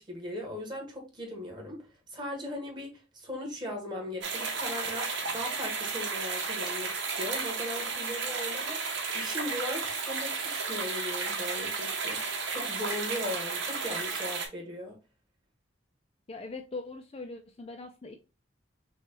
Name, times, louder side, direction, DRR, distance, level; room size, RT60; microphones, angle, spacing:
voice 1, 0.0-1.8 2.1-8.9 9.1-15.0, left 1 dB, 25° right, 1.5 m, -38 dB
sound 1, 4.2-14.5, right 4 dB, 75° right, 1.1 m, -33 dB
voice 2, 16.3-18.1, left 3 dB, 30° left, 0.4 m, -41 dB
5.9 x 2.4 x 2.9 m
head